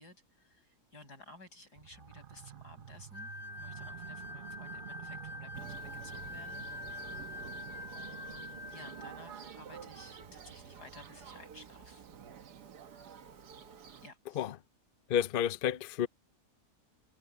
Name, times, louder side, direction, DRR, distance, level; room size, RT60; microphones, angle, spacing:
voice 1, 0.0-3.3 3.6-6.7 6.9-7.5 7.9-12.1 12.8-13.0 14.0-14.5, left 2 dB, 85° left, 8.8 m, -55 dB
sound 1, 1.8-12.3, right 9 dB, 45° right, 0.7 m, -51 dB
sound 2, 3.1-9.2, left 2 dB, 25° left, 1.2 m, -45 dB
Thunder, 5.5-14.1, right 7 dB, 90° right, 1.8 m, -50 dB
voice 2, 15.1-16.1, left 9 dB, 65° left, 0.5 m, -30 dB
omnidirectional pair, 1.7 m